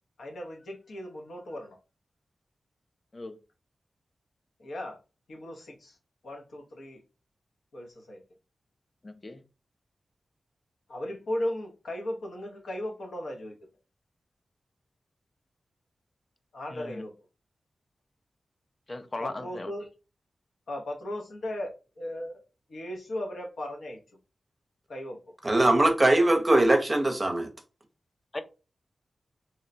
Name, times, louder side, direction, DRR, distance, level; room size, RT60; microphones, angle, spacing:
voice 1, 0.2-1.8 4.6-5.0 5.3-6.0 6.2-7.0 7.7-8.2 10.9-13.6 16.5-17.1 19.2-19.9 20.7-22.4 22.7-24.0 24.9-25.2, left 1 dB, 90° left, 0.7 m, -36 dB
voice 2, 9.0-9.4 16.7-17.0 18.9-19.7 28.3-28.4, left 2 dB, 35° left, 0.4 m, -37 dB
voice 3, 25.4-27.5, right 1 dB, 30° right, 0.6 m, -21 dB
2.9 x 2.0 x 2.5 m
cardioid pair, 60°, 0 cm